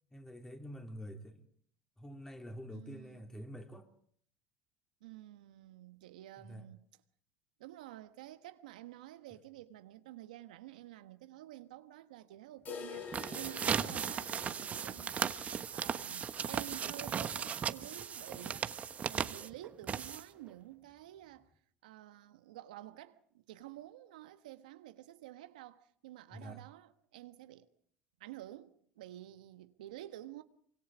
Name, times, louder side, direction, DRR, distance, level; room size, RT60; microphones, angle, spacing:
voice 1, 0.1-1.5 2.0-3.9 6.4-6.7 13.6-13.9 26.3-26.6, equal, 10° left, 3.7 m, -47 dB
voice 2, 2.7-3.3 5.0-6.8 7.6-15.3 15.7-18.7 19.1-21.5 21.8-27.7 28.2-30.4, right 14 dB, 90° right, 1.3 m, -50 dB
sound 1, 12.7-18.5 18.8-18.9 19.2-19.3 19.8-19.9 20.8-20.9, left 7 dB, 45° left, 4.0 m, -50 dB
sound 2, 13.0-20.5, right 7 dB, 35° right, 1.2 m, -37 dB
25.0 x 24.5 x 5.0 m
supercardioid pair, 100°, 4 cm